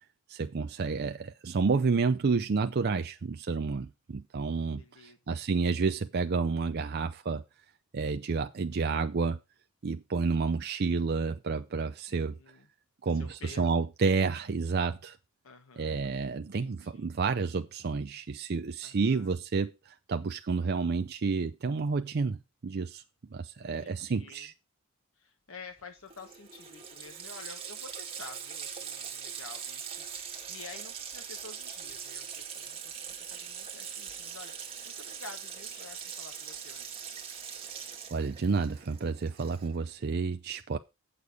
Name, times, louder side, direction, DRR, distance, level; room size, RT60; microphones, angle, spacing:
voice 1, 0.3-7.4 7.9-9.4 9.8-12.4 13.0-15.2 15.8-23.0 23.3-24.5 38.1-40.8, right 4 dB, 50° right, 0.5 m, -30 dB
voice 2, 4.7-5.4 12.1-12.7 13.1-13.8 15.4-17.2 18.8-19.3 23.6-24.5 25.2-37.0, left 4 dB, 65° left, 1.1 m, -50 dB
Water tap faucet, 25.8-25.9 26.1-39.9, right 7 dB, 25° right, 1.8 m, -42 dB
8.2 x 6.7 x 5.3 m
head